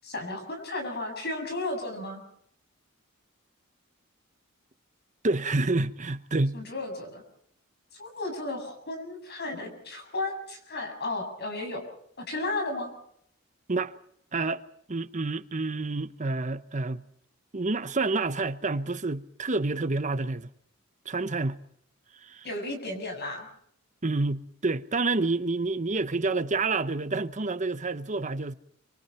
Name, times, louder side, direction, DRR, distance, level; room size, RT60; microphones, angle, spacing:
voice 1, 0.0-2.2 6.5-7.2 8.0-11.8 12.2-12.9 22.4-23.5, left 2 dB, 55° left, 7.4 m, -34 dB
voice 2, 5.2-6.6 13.7-13.9 14.3-14.6 14.9-17.0 17.5-20.5 21.0-21.6 22.2-22.4 24.0-28.5, right 3 dB, 35° right, 1.0 m, -28 dB
27.5 x 25.5 x 4.4 m
head